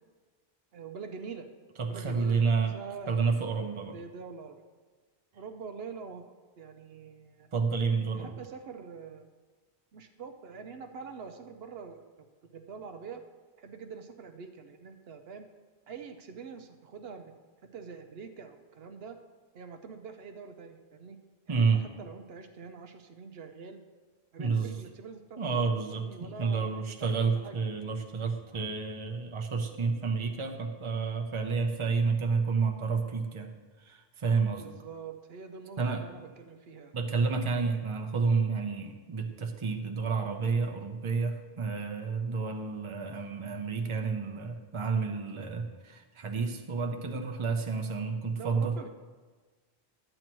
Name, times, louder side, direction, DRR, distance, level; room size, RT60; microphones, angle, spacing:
voice 1, 0.7-1.5 1.9-4.6 5.3-6.2 6.6-7.5 8.1-9.3 9.9-12.0 12.5-13.2 13.6-15.5 15.9-17.4 17.7-19.2 19.5-21.2 21.5-23.8 24.3-25.6 25.9-27.6 34.6-37.0 48.4-48.9, right 5 dB, 75° right, 6 dB, 0.9 m, -45 dB
voice 2, 1.8-2.7 3.1-4.0 7.5-8.4 21.5-21.8 24.4-24.7 25.4-26.0 26.4-33.5 33.8-34.7 35.8-36.0 36.9-48.8, right 4 dB, 30° right, 3 dB, 0.7 m, -30 dB
12.0 x 8.8 x 3.0 m, 1.3 s
omnidirectional pair, 1.1 m